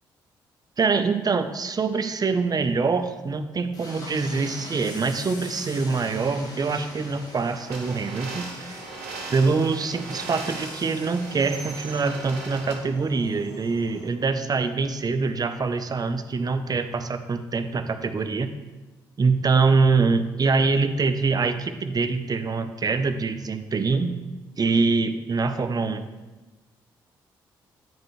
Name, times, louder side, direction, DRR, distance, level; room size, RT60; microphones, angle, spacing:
voice 1, 0.8-8.8 9.3-18.5 19.2-24.2 24.6-26.0, right 4 dB, 40° right, 9 dB, 0.7 m, -24 dB
Train, 3.7-14.1, left 1 dB, 40° left, 1.9 m, -43 dB
sound 1, 7.7-12.7, right 3 dB, 85° right, 1.2 m, -38 dB
9.0 x 5.0 x 3.1 m, 1.2 s
hypercardioid pair, 45°, 10 cm